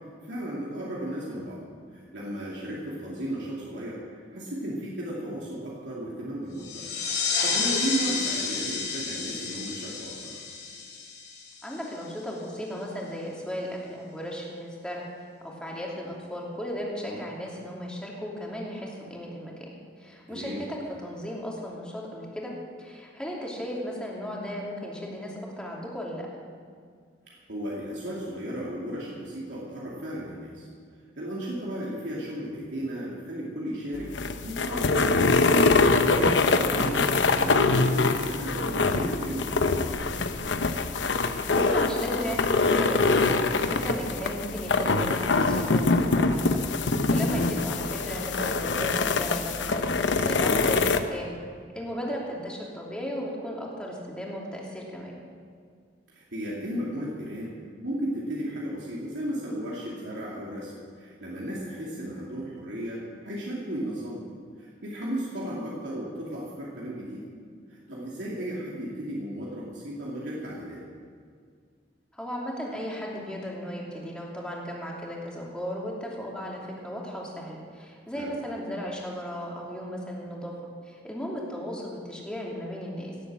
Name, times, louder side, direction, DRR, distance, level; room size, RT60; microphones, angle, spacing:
voice 1, 0.0-1.6 1.9-6.9 7.2-10.4 17.1-17.2 20.3-20.6 27.3-30.7 31.2-34.1 34.4-35.3 35.8-40.3 50.5-50.7 56.1-57.6 57.8-64.2 64.6-67.3 67.7-70.8 78.1-78.4, right 1 dB, 80° right, -5 dB, 2.6 m, -35 dB
sound 1, 6.6-11.9, left 4 dB, 65° left, 3.7 m, -30 dB
voice 2, 11.6-15.0 15.4-22.5 22.8-26.3 41.5-46.6 47.1-50.8 51.1-51.3 51.7-55.1 72.1-80.5 80.9-83.1, equal, 5° left, -3 dB, 2.8 m, -35 dB
sound 2, 34.0-51.0, left 3 dB, 85° left, 0.9 m, -24 dB
17.0 x 8.4 x 7.6 m, 2.1 s
head